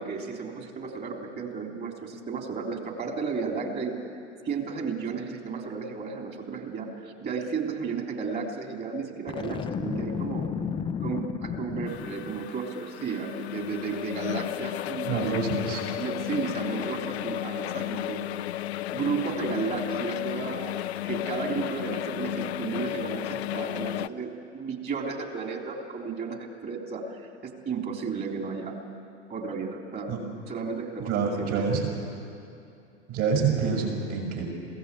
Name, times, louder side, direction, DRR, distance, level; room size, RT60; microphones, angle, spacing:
voice 1, 0.0-4.0 4.4-10.5 11.0-15.2 15.9-18.3 18.9-28.8 29.3-30.2 30.5-31.8, right 5 dB, 30° right, 2 dB, 3.4 m, -33 dB
Boom, 9.3-12.5, left 7 dB, 15° left, 0.6 m, -33 dB
sound 1, 11.9-24.1, left 13 dB, 65° left, 0.6 m, -33 dB
voice 2, 15.0-15.8 30.1-30.2 31.1-31.9 33.1-34.4, right 5 dB, 45° right, 1 dB, 6.2 m, -27 dB
22.0 x 16.5 x 8.4 m, 2.6 s
figure-of-eight pair, 95°, 35 cm